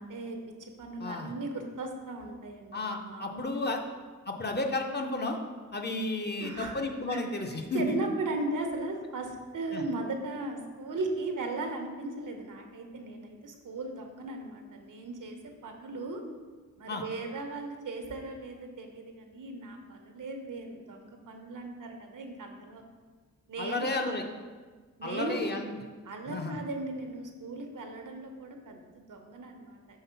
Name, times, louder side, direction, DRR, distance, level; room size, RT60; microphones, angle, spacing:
voice 1, 0.0-3.5 6.4-6.7 7.1-7.4 7.7-16.2 16.8-22.8 23.5-23.9 25.0-25.4 26.0-30.0, right 2 dB, 90° right, 3 dB, 0.9 m, -37 dB
voice 2, 1.0-1.3 2.7-3.8 4.3-5.4 5.7-8.0 9.7-9.8 16.9-17.0 23.6-24.2 25.0-25.7 26.3-26.6, left 2 dB, 35° left, 3 dB, 0.6 m, -32 dB
5.6 x 3.7 x 5.6 m, 1.5 s
wide cardioid pair, 125°, 31 cm